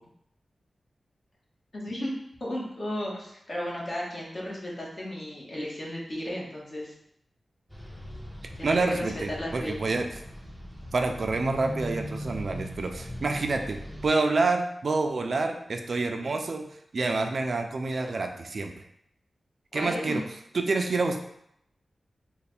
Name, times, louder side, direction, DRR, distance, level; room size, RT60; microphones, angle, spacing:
voice 1, 1.7-2.1 2.4-6.9 8.6-9.1 9.4-9.8 19.7-20.2, left 1 dB, 40° left, -4 dB, 1.1 m, -34 dB
sound 1, 7.7-14.1, equal, 5° right, 0.6 m, -39 dB
voice 2, 8.6-10.2 10.9-16.7 16.9-18.7 19.7-20.2 20.5-21.2, right 3 dB, 55° right, 4 dB, 0.4 m, -27 dB
3.2 x 2.2 x 4.2 m, 0.74 s
wide cardioid pair, 125°, 0 cm